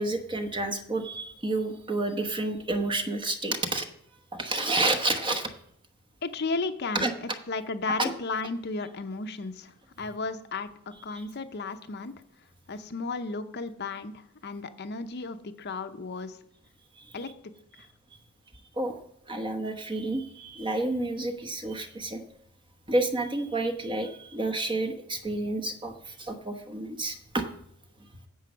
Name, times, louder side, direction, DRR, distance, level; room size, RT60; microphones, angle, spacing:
voice 1, 0.0-3.9 4.3-5.5 6.9-7.1 8.0-8.1 11.1-11.2 16.9-17.2 17.8-17.9 18.8-19.0 19.3-22.2 22.9-27.4, right 2 dB, 20° right, 5 dB, 1.0 m, -30 dB
voice 2, 6.2-12.1 12.7-16.4 17.1-17.3, left 3 dB, 50° left, 8 dB, 0.7 m, -34 dB
10.5 x 7.7 x 6.2 m, 0.74 s
head